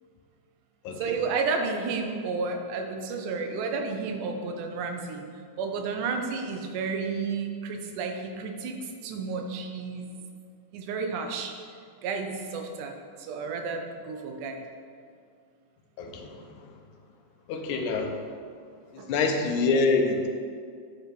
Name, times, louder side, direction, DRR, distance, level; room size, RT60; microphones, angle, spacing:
voice 1, 1.0-5.3 5.6-10.1 10.7-11.5 12.0-14.6 19.0-19.1, right 4 dB, 90° right, 4 dB, 2.3 m, -32 dB
voice 2, 16.0-16.7 17.5-18.2 18.9-20.3, left 4 dB, 85° left, 4 dB, 2.2 m, -26 dB
9.2 x 5.2 x 4.5 m, 2.2 s
omnidirectional pair, 3.5 m